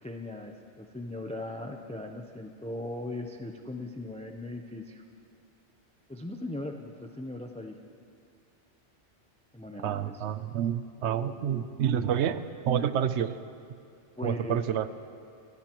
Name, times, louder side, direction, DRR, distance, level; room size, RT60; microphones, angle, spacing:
voice 1, 0.0-5.0 6.1-7.8 9.5-10.2 14.2-14.6, left 1 dB, 10° left, 4 dB, 0.5 m, -39 dB
voice 2, 9.8-13.4 14.2-14.9, right 9 dB, 70° right, 12 dB, 0.9 m, -28 dB
26.0 x 16.5 x 3.0 m, 2.4 s
omnidirectional pair, 1.2 m